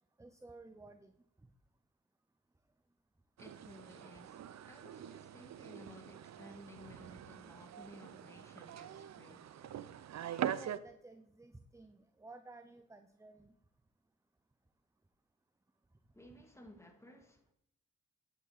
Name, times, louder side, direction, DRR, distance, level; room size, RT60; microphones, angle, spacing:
voice 1, 0.2-1.1 10.5-13.5, right 2 dB, 10° right, 0.7 m, -54 dB
voice 2, 3.4-9.5 16.1-17.5, left 1 dB, 10° left, 2.2 m, -56 dB
sound 1, 3.4-10.8, right 10 dB, 60° right, 0.7 m, -44 dB
9.8 x 8.4 x 4.2 m
cardioid pair, 70°, 31 cm